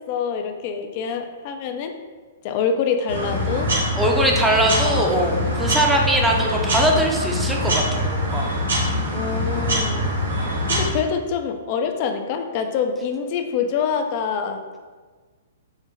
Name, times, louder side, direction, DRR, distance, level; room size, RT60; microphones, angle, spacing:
voice 1, 0.0-1.9 2.4-3.7 4.8-5.1 6.6-6.9 9.1-10.2 10.6-14.8, left 6 dB, 45° left, 6 dB, 0.4 m, -26 dB
sound 1, 3.1-10.9, equal, 80° right, 1.4 m, -23 dB
voice 2, 4.0-8.5, right 1 dB, 5° right, 0 dB, 0.6 m, -21 dB
4.5 x 2.1 x 3.5 m, 1.4 s
hypercardioid pair, 130°, 0 cm